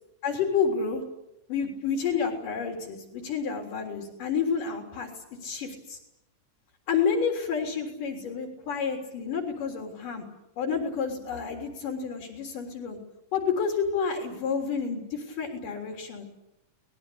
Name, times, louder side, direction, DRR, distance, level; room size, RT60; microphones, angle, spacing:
voice 1, 0.2-1.0 1.5-5.1 5.4-6.0 6.9-10.2 10.6-13.0 13.3-16.3, left 6 dB, 85° left, 3 dB, 5.2 m, -29 dB
28.5 x 20.5 x 8.8 m, 0.85 s
omnidirectional pair, 3.7 m